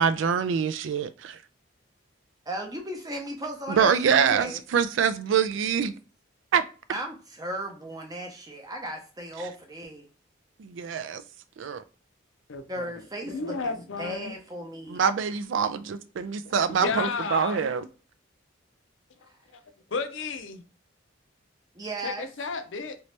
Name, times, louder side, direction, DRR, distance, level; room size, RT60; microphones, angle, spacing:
voice 1, 0.0-1.4 3.7-5.9 6.5-6.6 10.6-11.2 11.6-11.8 14.9-16.0 16.5-17.9, right 6 dB, 75° right, 0.4 m, -24 dB
voice 2, 2.5-4.6 6.9-10.0 12.7-15.0 16.8-16.9 19.3-19.4 21.7-22.3, right 1 dB, 20° right, 0.6 m, -36 dB
voice 3, 12.5-13.0 13.3-14.3 16.7-17.7 19.2-19.3 19.9-20.6 22.0-23.0, left 4 dB, 80° left, 0.5 m, -33 dB
2.9 x 2.7 x 3.2 m
head